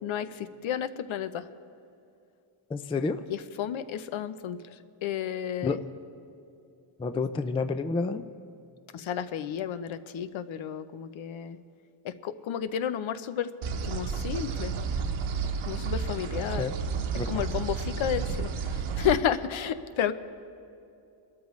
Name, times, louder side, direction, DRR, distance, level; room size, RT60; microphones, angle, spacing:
voice 1, 0.0-1.5 3.3-5.8 8.9-11.6 12.0-13.5 13.8-14.7 15.7-16.7 17.3-20.1, left 9 dB, 65° left, 12 dB, 0.8 m, -32 dB
voice 2, 2.7-3.2 5.6-5.8 7.0-8.2 16.6-16.7 17.2-17.4, left 4 dB, 15° left, 10 dB, 0.3 m, -29 dB
sound 1, 13.6-19.1, right 5 dB, 70° right, 1.1 m, -31 dB
25.5 x 13.0 x 3.2 m, 2.6 s
cardioid pair, 130°, 50 cm